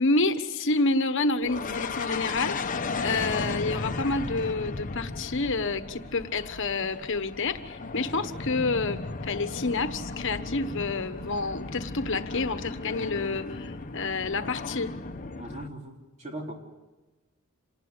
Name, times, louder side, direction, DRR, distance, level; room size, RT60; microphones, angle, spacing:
voice 1, 0.0-2.6 3.0-14.9, left 3 dB, 65° left, 10 dB, 1.2 m, -28 dB
sound 1, 1.4-15.7, left 3 dB, 40° left, 1.0 m, -35 dB
voice 2, 15.4-16.5, right 1 dB, 35° right, 1 dB, 3.6 m, -39 dB
27.5 x 19.0 x 8.1 m, 1.1 s
head